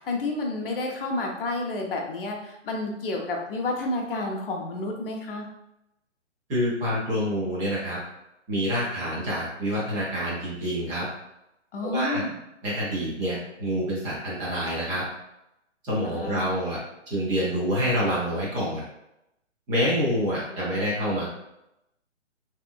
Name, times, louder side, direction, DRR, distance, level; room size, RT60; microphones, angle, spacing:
voice 1, 0.0-2.4 2.6-5.5 11.7-12.3 16.0-16.5, left 2 dB, 50° left, 1 dB, 0.7 m, -30 dB
voice 2, 6.5-8.0 8.5-11.0 11.8-12.2 12.6-15.0 15.8-16.8 17.1-18.8 19.7-21.3, equal, 10° right, -7 dB, 0.6 m, -27 dB
3.3 x 2.9 x 2.2 m, 0.86 s
figure-of-eight pair, 135°, 37 cm